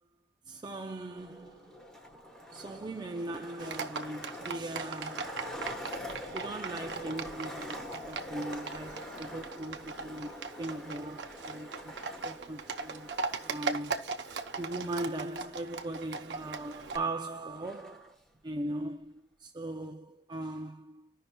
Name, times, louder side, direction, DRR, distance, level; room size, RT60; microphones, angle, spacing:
voice 1, 0.5-1.8 2.5-5.6 6.3-11.9 12.2-13.1 13.4-14.0 14.6-21.2, right 2 dB, 25° right, 0.4 m, -39 dB
Skateboard, 1.1-18.1, left 1 dB, 5° left, 1.1 m, -46 dB
Livestock farm animals working animals, 3.6-17.0, right 4 dB, 85° right, 0.7 m, -39 dB
14.0 x 5.5 x 2.2 m
head